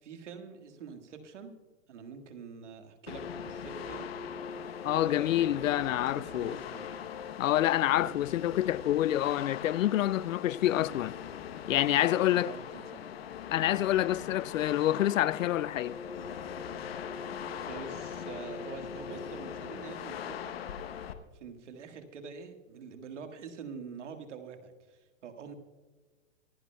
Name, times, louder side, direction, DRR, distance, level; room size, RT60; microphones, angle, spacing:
voice 1, 0.0-1.6 1.9-4.1 4.8-5.5 6.0-6.9 8.0-8.2 12.1-13.0 17.5-20.5 21.3-25.5, right 5 dB, 65° right, 1.7 m, -45 dB
sound 1, 3.1-21.1, left 8 dB, 50° left, 0.9 m, -41 dB
voice 2, 4.8-6.6 7.4-11.2 11.7-12.5 13.5-16.0, left 13 dB, 85° left, 0.5 m, -27 dB
25.0 x 11.0 x 2.2 m
hypercardioid pair, 165°, 38 cm